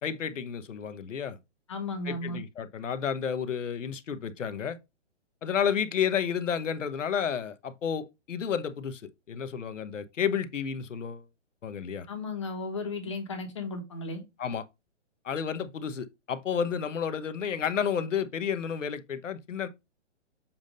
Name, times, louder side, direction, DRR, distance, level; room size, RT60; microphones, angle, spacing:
voice 1, 0.0-1.4 2.0-4.8 5.4-9.0 9.3-11.3 11.6-12.1 14.4-14.6 15.2-19.7, left 7 dB, 80° left, 1.0 m, -31 dB
voice 2, 1.7-2.4 12.1-14.2, left 3 dB, 25° left, 1.0 m, -35 dB
7.2 x 2.7 x 5.1 m
hypercardioid pair, 175°, 37 cm